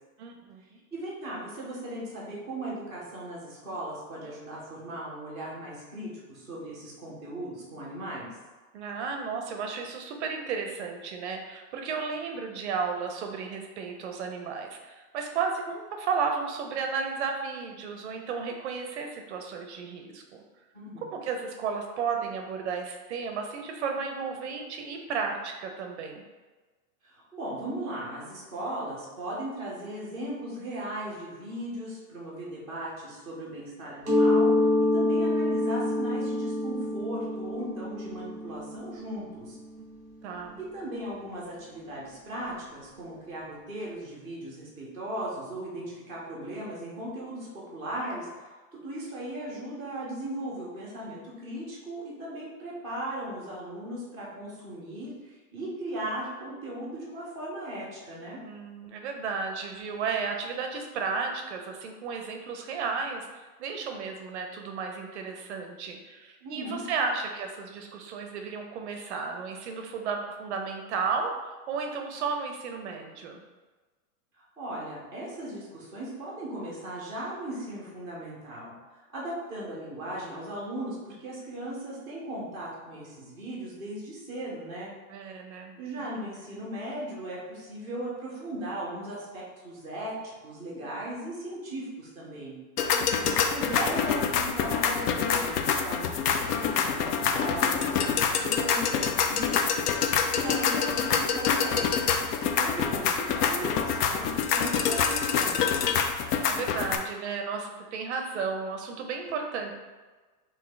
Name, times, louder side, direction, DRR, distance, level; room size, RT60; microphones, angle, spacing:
voice 1, 0.2-0.8 8.7-20.4 21.1-26.2 40.2-40.6 58.4-73.4 85.1-85.7 86.1-86.3 92.9-93.5 106.5-109.7, right 5 dB, 50° right, 3 dB, 0.5 m, -33 dB
voice 2, 0.9-8.4 20.7-21.0 27.0-39.6 40.6-48.3 48.7-58.4 66.4-66.8 74.6-78.7 79.1-84.9 85.8-92.6 93.5-101.8 102.6-106.0, right 1 dB, 5° left, -6 dB, 0.4 m, -37 dB
Mallet percussion, 34.0-39.6, left 2 dB, 15° right, 0.9 m, -26 dB
sound 1, 92.8-107.0, left 6 dB, 80° left, 0.6 m, -26 dB
3.7 x 2.7 x 3.2 m, 1.3 s
supercardioid pair, 160°, 45 cm